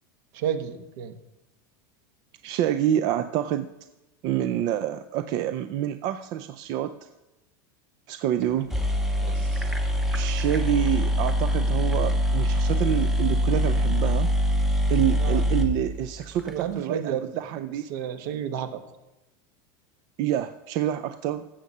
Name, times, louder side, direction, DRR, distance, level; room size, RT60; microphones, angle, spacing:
voice 1, 0.3-1.1 9.2-9.6 15.2-15.4 16.5-17.2 17.9-18.8, right 9 dB, 60° right, 9 dB, 1.2 m, -31 dB
voice 2, 2.4-3.7 4.2-7.0 8.1-8.7 10.1-14.3 14.9-17.9 20.2-21.5, right 11 dB, 35° right, 10 dB, 0.4 m, -27 dB
sound 1, 8.4-8.5 8.7-16.5, equal, 5° right, 0.7 m, -24 dB
15.0 x 7.2 x 5.4 m, 0.98 s
supercardioid pair, 170°, 11 cm